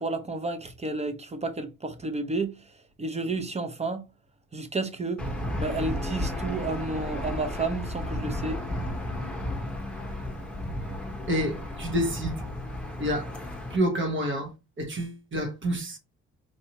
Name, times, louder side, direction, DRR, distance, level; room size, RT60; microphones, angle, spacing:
voice 1, 0.0-4.0 4.5-5.3 5.6-8.6, right 3 dB, 20° right, 0.7 m, -31 dB
Aircraft / Engine, 5.2-13.8, left 1 dB, 5° left, 1.1 m, -33 dB
voice 2, 11.3-12.4 13.0-13.3 13.7-14.5 14.8-16.0, equal, 40° right, 1.2 m, -28 dB
4.5 x 2.7 x 2.9 m
cardioid pair, 90°, 30 cm